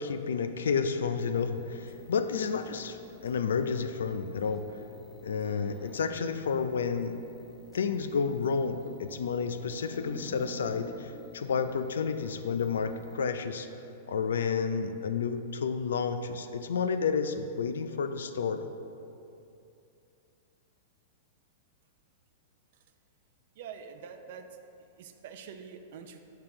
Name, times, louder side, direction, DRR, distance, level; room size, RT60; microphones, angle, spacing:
voice 1, 0.0-3.0 3.2-4.6 5.2-7.2 7.7-13.7 14.1-18.7, left 6 dB, 85° left, 10 dB, 0.4 m, -30 dB
sound 1, 1.2-13.2, right 1 dB, ahead, 0.7 m, -51 dB
voice 2, 23.6-24.5 25.0-26.2, right 7 dB, 65° right, 7 dB, 0.5 m, -45 dB
7.4 x 4.5 x 3.8 m, 2.7 s
hypercardioid pair, 125°, 0 cm